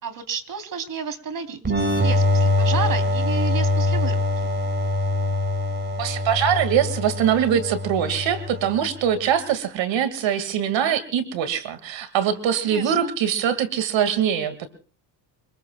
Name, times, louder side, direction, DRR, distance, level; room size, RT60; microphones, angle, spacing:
voice 1, 0.0-1.6 1.9-4.2 12.6-13.1, right 6 dB, 40° right, 9 dB, 3.4 m, -31 dB
sound 1, 1.7-9.1, left 2 dB, 20° right, 5.9 m, -23 dB
voice 2, 6.0-14.7, right 9 dB, 60° right, 12 dB, 2.2 m, -23 dB
29.0 x 20.5 x 2.3 m, 0.38 s
hypercardioid pair, 75°, 50 cm